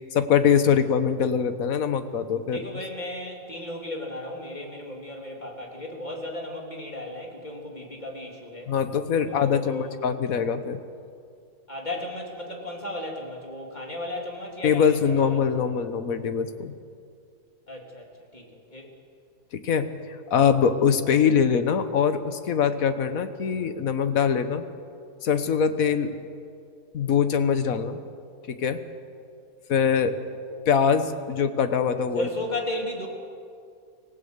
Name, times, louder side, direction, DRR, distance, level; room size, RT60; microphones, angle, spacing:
voice 1, 0.1-2.6 8.7-10.8 14.6-16.7 19.6-19.9 20.3-24.6 25.2-26.2 26.9-28.0 28.5-28.8 29.7-30.2 30.7-32.3, left 7 dB, 60° left, 10 dB, 1.5 m, -23 dB
voice 2, 2.5-8.7 9.3-10.1 11.7-15.4 17.7-18.1 18.3-18.9 32.1-33.1, left 1 dB, 25° left, 0 dB, 3.2 m, -35 dB
25.5 x 16.5 x 8.1 m, 2.4 s
omnidirectional pair, 1.7 m